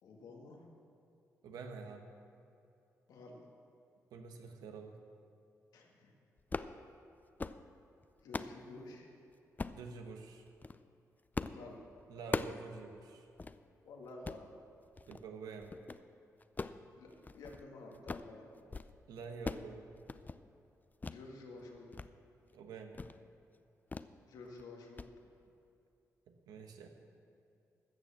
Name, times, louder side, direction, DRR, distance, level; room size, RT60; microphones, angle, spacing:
voice 1, 0.0-0.7 3.1-3.5 5.7-6.1 8.2-9.1 11.5-11.9 13.8-14.5 17.0-18.7 21.1-22.1 24.3-25.1, left 2 dB, 80° left, 0 dB, 1.9 m, -51 dB
voice 2, 1.4-2.1 4.1-5.0 9.7-10.4 12.1-13.3 15.1-15.8 19.1-19.9 22.5-23.1 26.3-26.9, right 4 dB, 85° right, 5 dB, 1.1 m, -48 dB
sound 1, 6.4-6.8 7.2-7.6 8.0-8.6 9.6-9.8 10.5-10.8 11.3-11.6 11.9-12.7 13.0-13.1 13.4-13.6 14.1-14.4 15.0-15.3 15.6-16.0 16.4-17.6 17.9-18.3 18.6-18.9 19.2-19.7 20.0-20.4 21.0-21.2 21.6-22.1 22.4-22.5 22.9-23.2 23.9-24.1 24.4-24.6 25.0-25.1, left 3 dB, 25° left, 0.5 m, -41 dB
14.0 x 6.5 x 7.3 m, 2.7 s
supercardioid pair, 55°, 7 cm